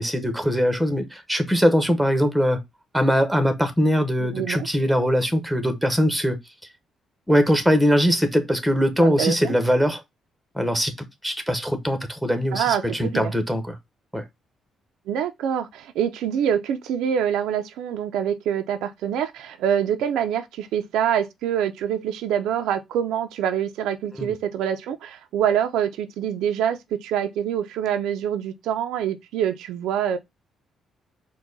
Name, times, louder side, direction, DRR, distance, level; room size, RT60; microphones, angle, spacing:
voice 1, 0.0-2.6 2.9-6.4 7.3-10.0 10.5-13.6 14.1-14.2 24.2-24.3, equal, ahead, 1.0 m, -21 dB
voice 2, 4.3-4.7 9.0-9.5 12.5-13.3 15.1-30.2, right 9 dB, 90° right, 0.5 m, -25 dB
4.5 x 2.2 x 3.9 m
cardioid pair, 90°, 0 cm